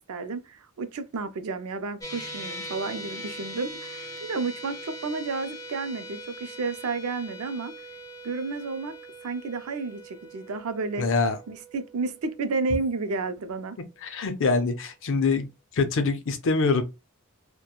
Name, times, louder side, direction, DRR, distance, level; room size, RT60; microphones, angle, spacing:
voice 1, 0.1-7.7 8.2-8.9 9.2-11.1 11.5-13.8, right 4 dB, 70° right, 0.5 m, -31 dB
sound 1, 2.0-14.3, equal, 15° left, 0.5 m, -42 dB
voice 2, 11.0-11.4 14.0-15.5 15.7-16.8, left 4 dB, 60° left, 0.5 m, -24 dB
2.9 x 2.2 x 2.3 m
head